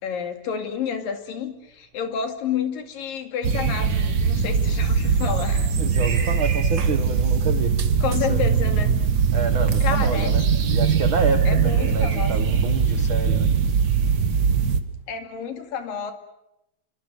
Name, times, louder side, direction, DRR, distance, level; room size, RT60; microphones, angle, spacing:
voice 1, 0.0-5.7 6.0-6.3 8.0-8.9 9.8-10.4 11.5-12.3 15.1-16.1, left 7 dB, 75° left, 6 dB, 3.9 m, -30 dB
sound 1, 3.4-14.8, right 6 dB, 55° right, 1.1 m, -21 dB
voice 2, 5.8-7.8 8.1-8.5 9.3-13.6, right 6 dB, 75° right, 10 dB, 1.1 m, -28 dB
29.5 x 24.0 x 6.7 m, 0.86 s
omnidirectional pair, 4.0 m